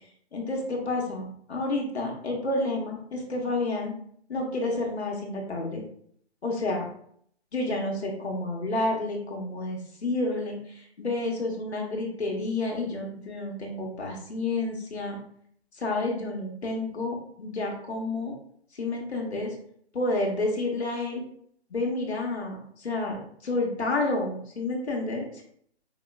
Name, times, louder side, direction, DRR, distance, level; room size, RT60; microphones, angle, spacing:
voice 1, 0.3-3.9 4.3-5.8 6.4-6.9 7.5-15.2 15.7-18.3 18.7-19.5 19.9-21.2 21.7-25.3, left 2 dB, 75° left, 0 dB, 1.1 m, -30 dB
4.9 x 2.9 x 2.3 m, 0.64 s
figure-of-eight pair, 140°, 33 cm